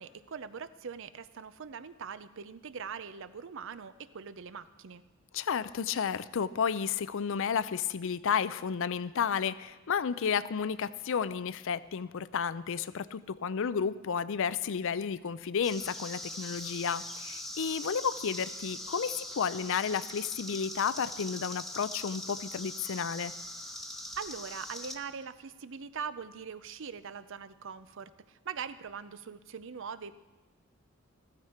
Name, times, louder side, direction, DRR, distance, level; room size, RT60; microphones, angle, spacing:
voice 1, 0.0-5.0 24.2-30.2, right 6 dB, 65° right, 14 dB, 0.6 m, -42 dB
voice 2, 5.3-23.3, left 6 dB, 65° left, 16 dB, 0.5 m, -32 dB
sound 1, 15.6-24.9, left 1 dB, ahead, 1.0 m, -42 dB
15.0 x 14.5 x 4.4 m, 1.2 s
head